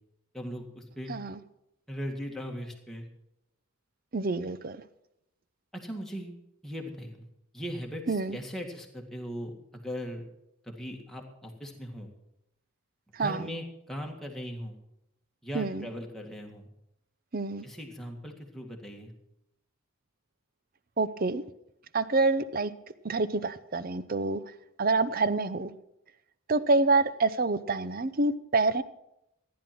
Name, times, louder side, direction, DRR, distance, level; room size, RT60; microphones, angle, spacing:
voice 1, 0.3-1.1 1.9-3.1 5.7-7.3 7.5-10.3 10.6-12.1 13.2-14.8 15.4-16.7 17.6-19.1, equal, ahead, 0 dB, 1.9 m, -39 dB
voice 2, 4.1-4.8 8.1-8.4 13.1-13.5 15.5-15.8 17.3-17.6 21.0-21.4 21.9-22.7 23.0-24.4 24.8-25.7 26.5-28.8, right 3 dB, 40° right, 15 dB, 0.6 m, -27 dB
14.5 x 10.5 x 6.0 m, 0.84 s
head